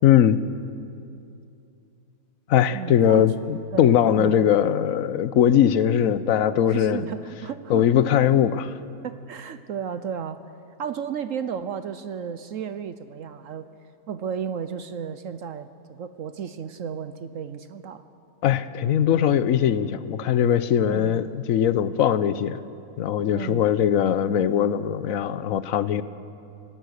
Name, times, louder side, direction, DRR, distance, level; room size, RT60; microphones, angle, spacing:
voice 1, 0.0-0.4 2.5-7.0 7.7-8.7 18.4-22.6 23.0-26.0, left 9 dB, 65° left, 14 dB, 1.1 m, -20 dB
voice 2, 2.7-3.3 3.7-4.5 6.7-8.1 9.0-10.4 10.8-13.6 14.1-18.0 20.8-21.2 23.3-23.7, right 7 dB, 65° right, 12 dB, 0.9 m, -33 dB
25.0 x 18.5 x 6.5 m, 2.6 s
omnidirectional pair, 1.7 m